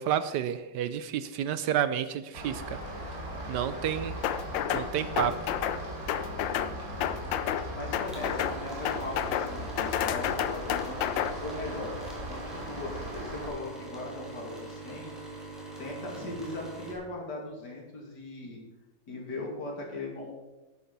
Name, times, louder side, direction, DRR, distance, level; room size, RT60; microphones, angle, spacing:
voice 1, 0.0-2.8 3.5-4.1 4.7-5.4, right 10 dB, 75° right, 13 dB, 1.1 m, -30 dB
Rain, 2.3-13.5, equal, 50° right, 3.1 m, -39 dB
sound 1, 4.2-4.9 5.2-5.8 6.1-6.7 7.0-7.6 7.9-8.6 8.9-9.5 9.8-11.3, left 10 dB, 85° left, 1.4 m, -30 dB
voice 2, 7.7-11.1 11.4-11.9 12.3-15.1 15.8-18.6 19.1-20.4, left 2 dB, 65° left, -1 dB, 3.1 m, -39 dB
sound 2, 8.0-16.9, right 2 dB, ahead, 2.8 m, -43 dB
11.5 x 8.5 x 5.4 m, 1.1 s
omnidirectional pair, 2.0 m